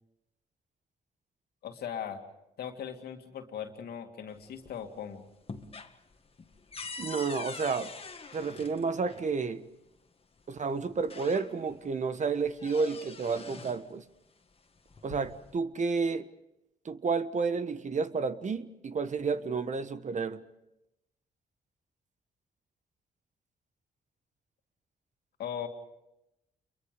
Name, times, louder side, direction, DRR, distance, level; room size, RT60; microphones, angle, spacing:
voice 1, 1.6-2.2 2.6-5.2 25.4-25.7, left 8 dB, 80° left, 2.5 m, -39 dB
sound 1, 4.3-5.0 5.3-9.3 10.4-10.5 10.9-11.8 12.2-13.9 14.8-15.6, left 4 dB, 35° left, 1.8 m, -44 dB
voice 2, 7.0-7.9 8.3-9.7 10.5-14.1 15.0-16.3 16.8-20.4, right 4 dB, 50° right, 1.3 m, -31 dB
28.5 x 23.0 x 5.3 m
cardioid pair, 70°, 16 cm